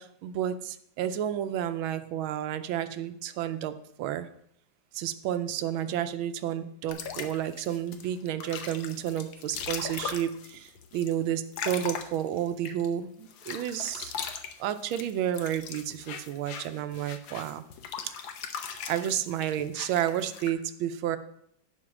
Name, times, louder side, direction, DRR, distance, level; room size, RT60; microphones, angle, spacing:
voice 1, 0.0-3.7 4.0-4.3 4.9-14.1 14.6-17.6 18.9-21.2, right 10 dB, 75° right, 11 dB, 1.4 m, -31 dB
sound 1, 6.9-12.9 13.3-20.5, left 7 dB, 70° left, 1.5 m, -39 dB
11.0 x 5.0 x 6.1 m, 0.71 s
omnidirectional pair, 2.3 m